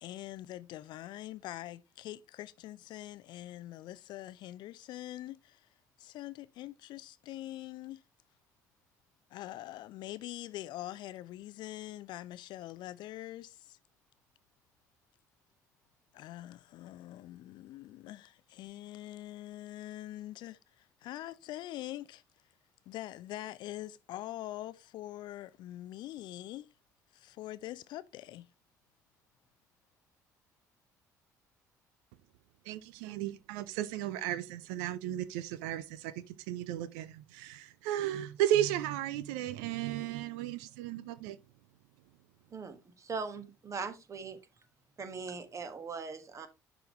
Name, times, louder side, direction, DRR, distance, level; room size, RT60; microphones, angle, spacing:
voice 1, 0.0-5.7 6.0-8.0 9.3-13.8 16.1-22.2 22.9-26.7 27.1-28.5, left 14 dB, 55° left, 0.5 m, -44 dB
voice 2, 32.6-41.4, right 12 dB, 70° right, 0.5 m, -34 dB
voice 3, 42.5-44.4 45.0-46.5, right 5 dB, 35° right, 1.5 m, -40 dB
11.0 x 3.8 x 3.1 m
figure-of-eight pair, 55°, 9 cm